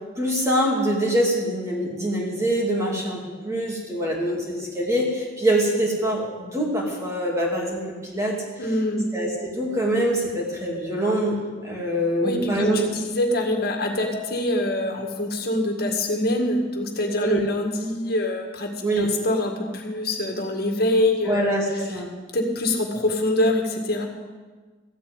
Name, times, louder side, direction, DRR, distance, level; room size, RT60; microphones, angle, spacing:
voice 1, 0.2-8.4 9.1-11.3 11.6-12.8 17.2-17.4 18.8-19.1 21.2-22.1, right 1 dB, 15° right, -3 dB, 2.7 m, -24 dB
voice 2, 8.6-9.1 12.2-21.6 22.3-24.1, left 1 dB, 55° left, 3 dB, 2.0 m, -24 dB
15.0 x 8.1 x 9.0 m, 1.4 s
head